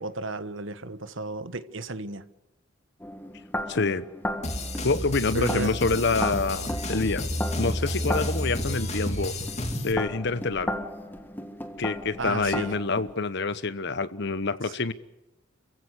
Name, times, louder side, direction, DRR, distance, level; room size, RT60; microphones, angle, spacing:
voice 1, 0.0-2.3 5.3-5.8 12.2-12.7 14.6-14.8, right 3 dB, 65° right, 1.3 m, -33 dB
sound 1, 3.0-13.1, left 1 dB, 10° left, 1.5 m, -35 dB
voice 2, 3.7-4.1 4.8-7.3 7.6-9.3 9.8-10.7 11.8-14.9, left 3 dB, 55° left, 1.0 m, -27 dB
sound 2, 4.4-9.9, left 1 dB, 35° left, 2.6 m, -31 dB
29.0 x 15.5 x 8.2 m
head